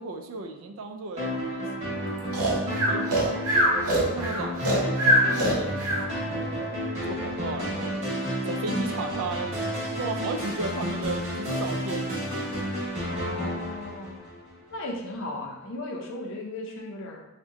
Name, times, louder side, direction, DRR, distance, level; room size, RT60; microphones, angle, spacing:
voice 1, 0.0-3.3 3.8-8.0 8.5-12.3, right 3 dB, 65° right, 5 dB, 0.3 m, -36 dB
sound 1, 1.2-14.7, equal, 30° right, 0.9 m, -31 dB
Breathing, 2.3-6.0, right 1 dB, 85° right, 0.8 m, -23 dB
voice 2, 2.9-3.5 13.1-14.2 14.7-17.3, left 2 dB, 55° left, 0 dB, 0.5 m, -37 dB
2.8 x 2.1 x 3.5 m, 0.92 s
head